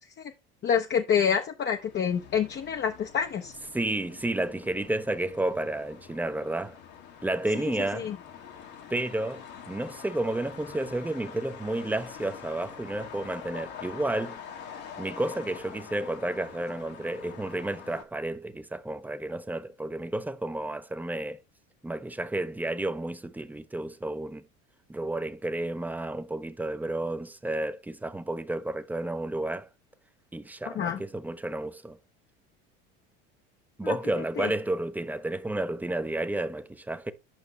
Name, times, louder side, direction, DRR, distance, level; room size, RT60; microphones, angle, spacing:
voice 1, 0.6-3.5 7.9-8.2 30.7-31.0 33.8-34.0 34.4-34.5, left 7 dB, 35° left, 0.8 m, -27 dB
sound 1, 1.6-18.0, left 8 dB, 70° left, 1.8 m, -46 dB
voice 2, 3.7-6.8 7.2-8.1 8.9-14.4 15.0-21.4 21.8-24.4 24.9-29.7 30.3-32.0 33.8-37.1, right 1 dB, 5° right, 0.6 m, -31 dB
8.9 x 5.6 x 3.1 m
hypercardioid pair, 90°, 30 cm